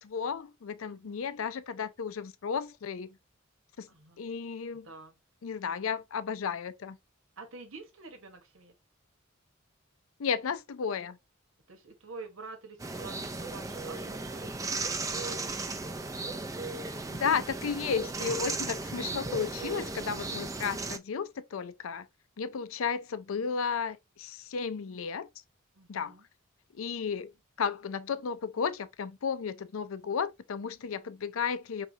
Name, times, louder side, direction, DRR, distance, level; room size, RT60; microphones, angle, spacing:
voice 1, 0.0-3.1 3.8-3.9 4.2-4.9 5.4-7.0 10.2-11.2 17.1-22.1 22.4-25.3 25.9-26.1 26.7-27.3 27.6-31.9, left 6 dB, 80° left, 0.5 m, -33 dB
voice 2, 3.9-4.2 4.8-5.2 7.4-8.7 11.7-14.9 15.1-16.1 25.7-26.3 31.0-31.1, right 3 dB, 85° right, 1.2 m, -48 dB
sound 1, 12.8-21.0, right 3 dB, 15° right, 0.4 m, -36 dB
4.9 x 3.2 x 2.8 m
head